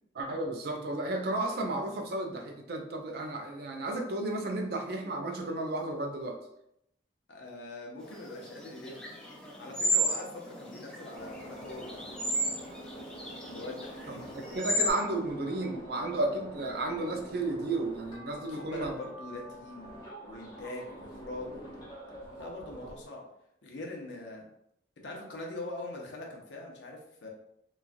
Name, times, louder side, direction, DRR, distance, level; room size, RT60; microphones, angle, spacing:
voice 1, 0.2-6.4 14.1-18.9, right 2 dB, 60° right, 3 dB, 0.5 m, -33 dB
voice 2, 7.3-9.1 9.6-11.9 13.5-14.3 18.3-21.6 22.4-23.2 23.6-24.5 25.0-27.3, left 2 dB, 75° left, 0 dB, 0.7 m, -42 dB
sound 1, 8.1-14.9, right 1 dB, 5° left, 0.4 m, -33 dB
sound 2, 11.1-23.1, equal, 25° left, 0.9 m, -46 dB
3.0 x 2.3 x 2.5 m, 0.76 s
head